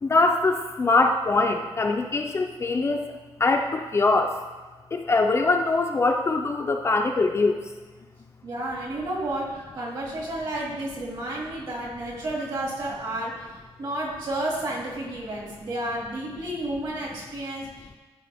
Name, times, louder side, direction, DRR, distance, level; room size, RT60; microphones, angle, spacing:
voice 1, 0.0-3.1 3.4-4.3 4.9-7.6, left 3 dB, 25° left, 3 dB, 0.5 m, -22 dB
voice 2, 8.4-18.0, right 1 dB, 50° right, -3 dB, 2.2 m, -31 dB
13.5 x 4.7 x 3.5 m, 1.3 s
wide cardioid pair, 175°, 10 cm